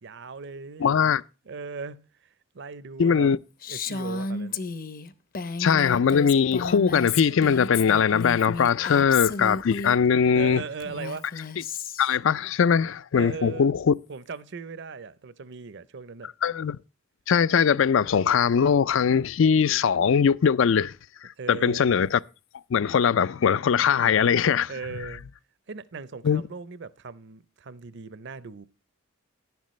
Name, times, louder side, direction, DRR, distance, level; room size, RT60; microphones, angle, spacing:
voice 1, 0.0-0.9 1.5-2.3 2.5-3.3 3.7-4.6 10.3-11.3 13.2-13.7 14.1-16.3 21.4-21.8 24.7-25.2 25.7-28.7, right 5 dB, 60° right, 0.6 m, -38 dB
voice 2, 0.8-1.2 3.0-3.4 5.6-10.6 12.0-13.9 16.4-16.8 17.3-20.9 21.5-22.2 22.7-24.7 26.2-26.4, left 7 dB, 65° left, 0.4 m, -21 dB
Female speech woman speaking, 3.6-10.0 10.8-12.2, left 4 dB, 45° left, 0.7 m, -33 dB
11.0 x 10.5 x 3.1 m
head